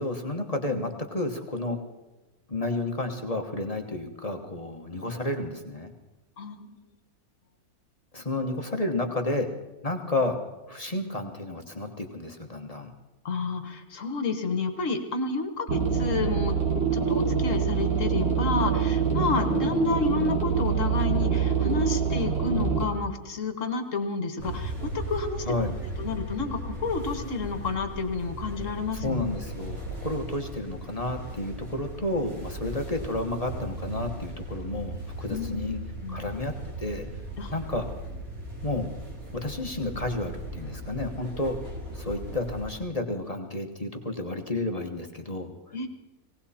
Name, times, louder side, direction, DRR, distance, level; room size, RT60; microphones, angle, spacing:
voice 1, 0.0-1.8 2.5-5.9 8.1-9.5 9.8-10.4 10.7-12.9 25.5-25.7 29.0-35.8 36.1-37.1 37.5-37.9 38.6-38.9 39.3-41.5 41.9-45.7, left 2 dB, 25° left, 4 dB, 1.3 m, -31 dB
voice 2, 6.4-6.8 13.2-16.6 16.9-25.4 26.0-29.2 35.3-35.7 36.0-36.3 37.4-37.5 45.7-45.9, left 4 dB, 55° left, 7 dB, 1.7 m, -30 dB
sound 1, 15.7-22.9, right 6 dB, 45° right, 2.6 m, -25 dB
sound 2, 24.4-42.7, right 1 dB, 65° right, 3.5 m, -37 dB
18.5 x 18.5 x 4.3 m, 1.1 s
omnidirectional pair, 1.6 m